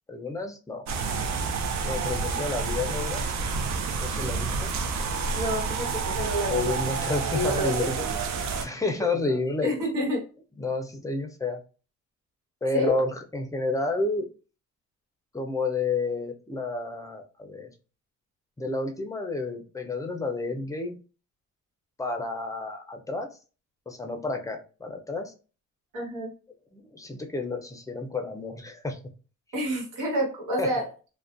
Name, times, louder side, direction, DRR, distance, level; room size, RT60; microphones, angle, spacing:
voice 1, 0.1-0.8 1.9-3.2 4.0-4.7 6.5-8.0 8.6-9.7 10.6-11.6 12.6-14.3 15.3-17.7 18.6-21.0 22.0-23.4 23.9-25.3 26.7-29.0 30.6-30.8, left 3 dB, 10° left, 4 dB, 0.5 m, -30 dB
sound 1, 0.9-8.7, right 4 dB, 65° right, 0.5 m, -29 dB
voice 2, 5.3-8.2 9.0-10.2 12.7-13.0 25.9-26.3 29.5-30.9, equal, 80° right, -1 dB, 1.3 m, -29 dB
2.4 x 2.1 x 2.4 m, 0.35 s
cardioid pair, 90°, 30 cm